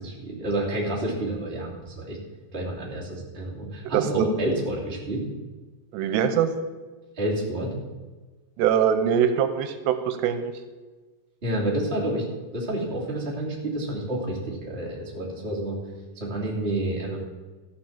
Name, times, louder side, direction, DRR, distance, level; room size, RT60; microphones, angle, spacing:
voice 1, 0.0-2.2 2.5-5.2 7.2-7.7 11.4-15.8 16.1-17.2, right 1 dB, 20° right, -4 dB, 2.3 m, -29 dB
voice 2, 3.9-4.3 5.9-6.5 8.6-10.5, right 8 dB, 90° right, 10 dB, 2.9 m, -23 dB
14.0 x 6.2 x 7.3 m, 1.3 s
omnidirectional pair, 5.0 m